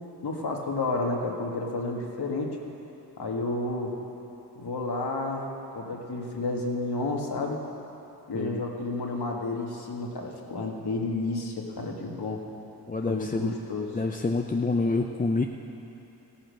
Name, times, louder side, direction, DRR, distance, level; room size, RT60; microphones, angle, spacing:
voice 1, 0.2-2.5 3.2-4.0 4.6-7.6 8.3-12.4 13.1-13.9, left 2 dB, 65° left, 0 dB, 1.8 m, -31 dB
voice 2, 12.9-13.6 13.9-15.4, left 3 dB, 20° left, 3 dB, 0.6 m, -27 dB
15.0 x 8.9 x 6.5 m, 3.0 s
cardioid pair, 50°, 41 cm